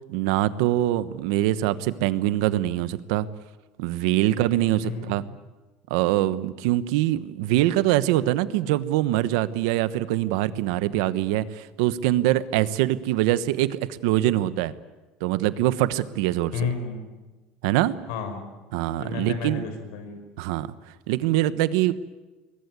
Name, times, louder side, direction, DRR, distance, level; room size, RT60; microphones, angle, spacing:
voice 1, 0.1-3.3 3.8-5.2 5.9-14.7 15.2-16.7 17.6-17.9 18.7-19.6 20.4-20.7 21.1-21.9, right 14 dB, 85° right, 14 dB, 1.1 m, -23 dB
voice 2, 4.8-5.2 16.5-17.0 18.1-18.4 19.0-20.2, left 5 dB, 90° left, 8 dB, 5.7 m, -31 dB
21.5 x 21.0 x 9.6 m, 1.2 s
cardioid pair, 165°, 3 cm